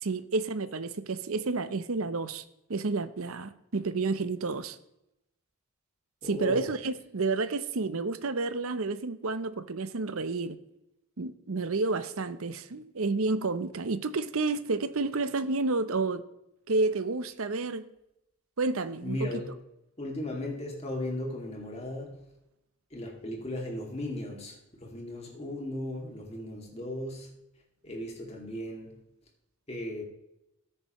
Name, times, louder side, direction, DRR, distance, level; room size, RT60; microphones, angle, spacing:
voice 1, 0.0-2.4 2.7-4.8 6.2-10.6 11.2-16.2 16.7-17.9 18.6-19.3, right 3 dB, 75° right, 0.7 m, -30 dB
voice 2, 6.2-6.7 19.0-19.5 20.0-22.2 22.9-27.3 27.8-29.0 29.7-30.0, left 1 dB, 30° left, 2.3 m, -36 dB
13.5 x 9.9 x 3.1 m
head